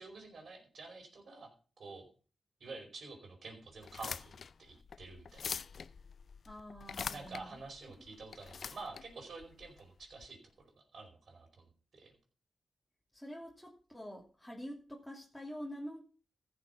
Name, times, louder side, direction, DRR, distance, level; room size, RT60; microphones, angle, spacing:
voice 1, 0.0-1.5 1.8-2.1 2.6-4.3 4.6-5.5 7.1-12.1, right 3 dB, 65° right, 2 dB, 4.9 m, -49 dB
sound 1, 3.8-10.3, left 6 dB, 65° left, 0.5 m, -45 dB
voice 2, 6.4-7.6 13.1-16.0, equal, 5° left, -3 dB, 2.7 m, -46 dB
15.0 x 6.9 x 5.5 m, 0.38 s
cardioid pair, 65°, 0 cm